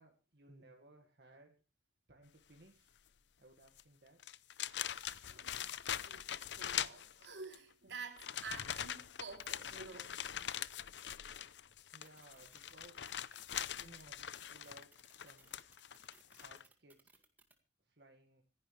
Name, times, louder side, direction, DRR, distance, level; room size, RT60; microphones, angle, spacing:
voice 1, 0.0-1.6 2.1-2.9 3.4-4.2 11.9-13.1 13.7-15.6 16.4-17.1 17.8-18.4, right 2 dB, 65° right, 1.8 m, -61 dB
sound 1, 3.7-3.8 4.2-7.6 8.2-16.6, left 10 dB, 80° left, 0.6 m, -43 dB
voice 2, 5.3-5.7 6.0-6.3 6.6-10.2, right 4 dB, 85° right, 3.2 m, -50 dB
sound 2, 12.0-17.5, right 3 dB, 10° right, 2.0 m, -65 dB
26.5 x 10.5 x 3.2 m
head